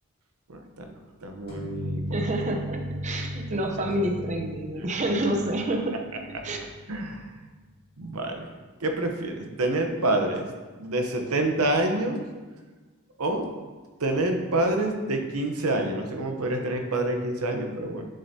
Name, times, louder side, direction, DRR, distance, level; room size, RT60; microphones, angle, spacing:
voice 1, 0.5-0.9 1.2-2.0 6.9-7.3 8.0-8.5 8.8-10.5 10.8-12.2 13.2-13.5 14.0-18.1, right 1 dB, 85° right, 4 dB, 0.9 m, -27 dB
sound 1, 1.5-7.0, equal, 45° left, 1.8 m, -36 dB
voice 2, 2.1-6.0 6.4-6.6, right 1 dB, 35° right, 3 dB, 0.7 m, -28 dB
7.6 x 6.7 x 2.8 m, 1.3 s
head